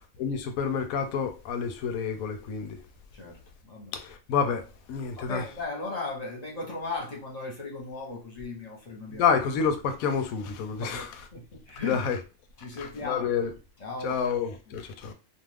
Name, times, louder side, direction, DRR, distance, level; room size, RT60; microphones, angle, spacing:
voice 1, 0.2-2.8 3.9-5.5 9.1-11.1 11.8-12.2 12.8-13.5 14.0-15.1, left 6 dB, 80° left, 1.0 m, -28 dB
voice 2, 3.1-3.9 5.2-9.2 10.7-12.1 12.6-13.3 13.8-14.2, left 3 dB, 35° left, 0.9 m, -37 dB
2.4 x 2.4 x 3.3 m
omnidirectional pair, 1.5 m